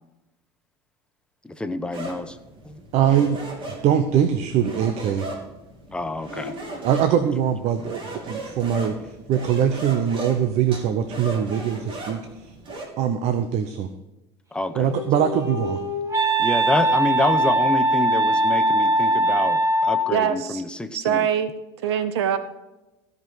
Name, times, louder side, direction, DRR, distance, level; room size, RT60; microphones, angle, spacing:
voice 1, 1.4-2.4 2.6-2.8 5.3-5.4 5.9-6.6 14.5-15.0 16.4-21.3, left 2 dB, 5° left, 9 dB, 0.9 m, -27 dB
sound 1, 1.9-12.9, right 2 dB, 40° right, 3.3 m, -37 dB
voice 2, 2.9-3.4 3.7-5.3 6.8-9.0 9.3-12.5 13.0-13.9 14.8-15.8, right 9 dB, 55° right, 9 dB, 1.0 m, -22 dB
Wind instrument woodwind instrument, 14.7-20.2, right 1 dB, 25° right, 2.4 m, -21 dB
voice 3, 20.1-20.6 20.9-21.5 21.8-22.4, right 9 dB, 90° right, 12 dB, 0.9 m, -23 dB
15.5 x 5.4 x 6.1 m, 1.0 s
supercardioid pair, 105°, 13 cm